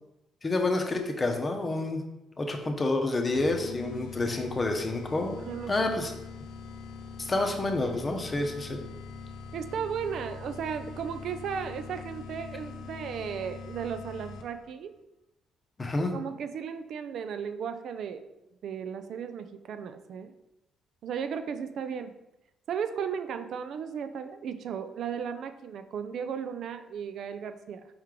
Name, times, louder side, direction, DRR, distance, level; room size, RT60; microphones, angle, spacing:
voice 1, 0.4-2.0 2.4-5.4 5.7-6.1 7.2-8.8 15.8-16.1, left 2 dB, 30° left, 4 dB, 0.7 m, -28 dB
sound 1, 3.3-14.7, left 5 dB, 90° left, 0.5 m, -43 dB
voice 2, 5.4-6.1 9.5-14.9 16.1-18.2 18.6-20.3 21.0-22.1 22.7-27.9, right 7 dB, 70° right, 9 dB, 0.3 m, -35 dB
4.5 x 3.2 x 3.7 m, 0.92 s
cardioid pair, 90°, 0 cm